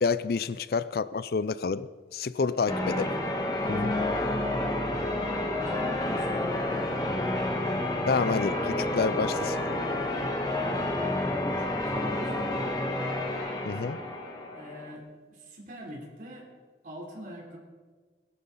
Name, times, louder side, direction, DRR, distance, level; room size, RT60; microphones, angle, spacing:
voice 1, 0.0-3.1 3.7-3.9 8.1-9.7 13.7-14.0, left 4 dB, 55° left, 16 dB, 0.4 m, -29 dB
voice 2, 2.4-2.7 3.6-3.9 4.4-4.9 5.6-7.3 10.0-12.8 14.5-16.5 16.8-17.6, equal, 50° right, -1 dB, 3.5 m, -44 dB
Church bell, 2.7-14.9, left 1 dB, 20° left, 1.4 m, -29 dB
21.0 x 11.5 x 4.1 m, 1.4 s
head